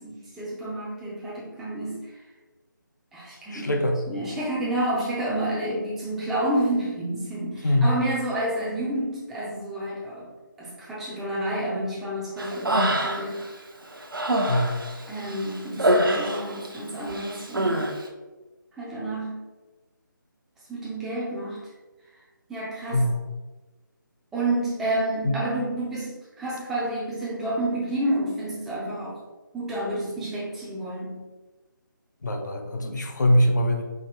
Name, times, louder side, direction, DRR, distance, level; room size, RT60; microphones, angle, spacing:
voice 1, 0.0-2.1 3.1-3.7 4.1-10.3 10.6-13.4 15.1-17.9 18.8-19.4 20.7-21.6 22.5-23.0 24.3-29.2 29.5-31.2, right 1 dB, 5° right, -7 dB, 0.4 m, -29 dB
voice 2, 3.5-4.0 7.6-7.9 14.5-14.8 22.9-23.2 25.2-25.4 32.2-33.8, left 1 dB, 60° left, 3 dB, 0.7 m, -22 dB
Human voice, 12.4-13.5 13.8-16.8 17.1-17.9, right 1 dB, 80° right, 0.7 m, -25 dB
4.9 x 2.8 x 2.9 m, 1.2 s
figure-of-eight pair, 155°, 11 cm